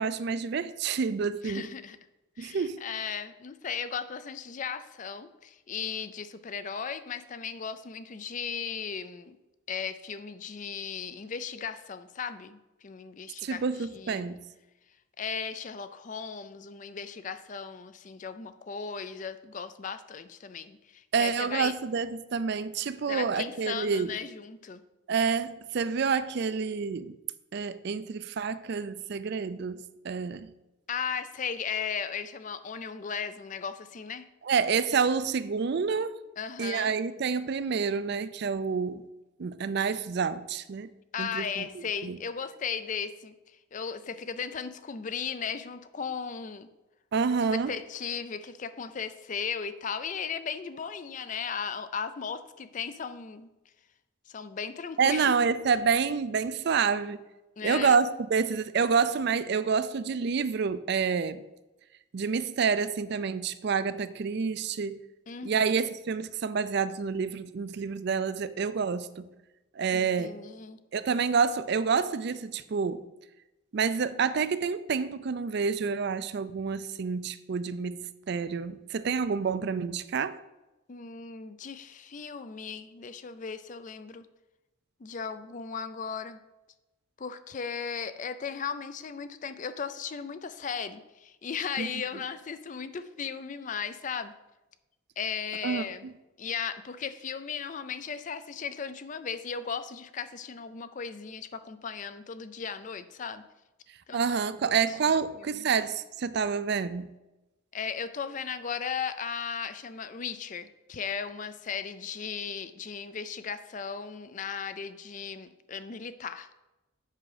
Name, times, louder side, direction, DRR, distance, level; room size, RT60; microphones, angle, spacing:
voice 1, 0.0-1.7 2.4-2.8 13.4-14.4 21.1-24.1 25.1-27.2 27.5-30.5 34.4-36.1 36.6-39.0 39.4-40.9 41.2-42.2 47.1-47.7 55.0-57.2 57.6-61.4 62.1-65.0 65.4-69.3 69.8-70.3 70.9-73.0 73.7-80.4 91.8-91.9 95.6-96.1 104.1-107.1, right 5 dB, 55° right, 15 dB, 0.4 m, -28 dB
voice 2, 1.4-2.0 2.4-9.4 9.7-13.6 13.9-14.4 15.2-21.7 23.1-24.8 30.9-34.2 36.4-36.9 41.1-43.4 43.7-46.7 47.4-53.5 54.3-55.3 57.6-58.0 65.3-65.8 69.9-70.8 80.9-84.3 85.0-86.4 87.2-94.3 95.2-96.1 96.4-103.4 104.1-104.4 104.7-104.8 105.4-105.6 107.7-116.5, left 6 dB, 40° left, 12 dB, 0.4 m, -36 dB
7.5 x 5.8 x 4.9 m, 1.0 s
head